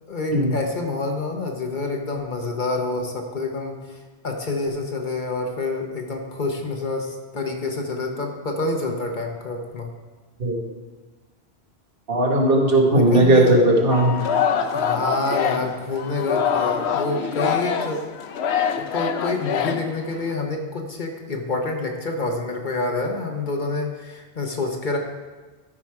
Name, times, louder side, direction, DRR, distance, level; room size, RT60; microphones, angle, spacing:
voice 1, 0.1-4.0 4.2-9.9 12.9-13.5 14.7-18.0 18.8-25.0, left 3 dB, 50° left, 2 dB, 1.1 m, -27 dB
voice 2, 12.1-14.3, right 1 dB, 60° right, -1 dB, 1.6 m, -17 dB
Singing, 13.9-20.3, left 7 dB, 80° left, 0.9 m, -25 dB
13.0 x 5.0 x 4.8 m, 1.3 s
omnidirectional pair, 1.1 m